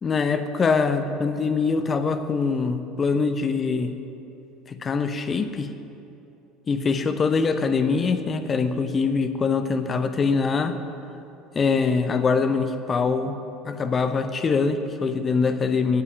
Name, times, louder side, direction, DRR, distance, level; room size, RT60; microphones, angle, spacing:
voice 1, 0.0-3.9 4.7-5.7 6.7-10.8 11.5-13.4 13.6-16.0, left 4 dB, 30° left, 9 dB, 0.8 m, -23 dB
9.2 x 8.4 x 8.8 m, 2.8 s
figure-of-eight pair, 65°, 0 cm